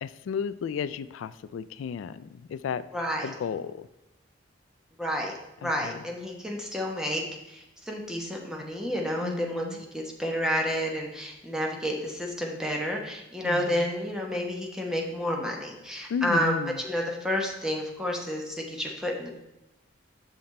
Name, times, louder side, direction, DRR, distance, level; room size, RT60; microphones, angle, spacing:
voice 1, 0.0-2.9 3.2-3.9 5.6-6.0 9.2-9.8 13.4-13.9 16.1-16.8, left 6 dB, 90° left, 15 dB, 0.3 m, -33 dB
voice 2, 2.9-3.3 5.0-9.7 9.9-16.6 16.8-19.4, equal, 5° right, 0 dB, 1.0 m, -30 dB
6.4 x 5.9 x 4.2 m, 0.96 s
head